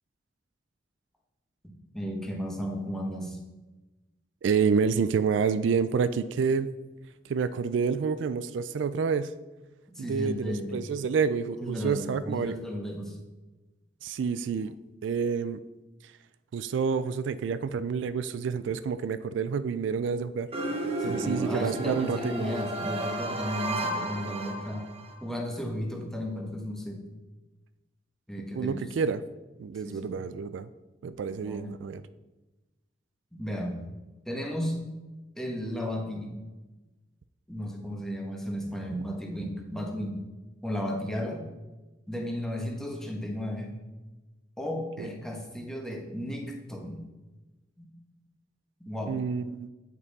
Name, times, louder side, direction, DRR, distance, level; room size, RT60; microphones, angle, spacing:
voice 1, 1.6-3.4 9.9-10.8 11.6-13.2 21.0-24.9 25.2-27.0 28.3-28.8 29.8-30.2 31.4-31.8 33.3-33.8 34.3-34.9 35.4-36.4 37.5-40.2 40.6-41.4 42.1-43.7 44.6-47.0 47.8-47.9 48.8-49.2, equal, 5° left, 1 dB, 1.1 m, -34 dB
voice 2, 4.4-6.7 7.3-9.3 10.0-12.5 14.0-14.7 15.0-15.6 16.5-20.5 21.0-22.3 28.5-29.2 29.6-30.7 31.0-32.0 45.0-45.1 49.1-49.7, right 6 dB, 85° right, 13 dB, 0.3 m, -28 dB
sound 1, 20.5-25.1, right 2 dB, 35° right, 0.8 m, -33 dB
8.1 x 5.4 x 4.1 m, 1.1 s
head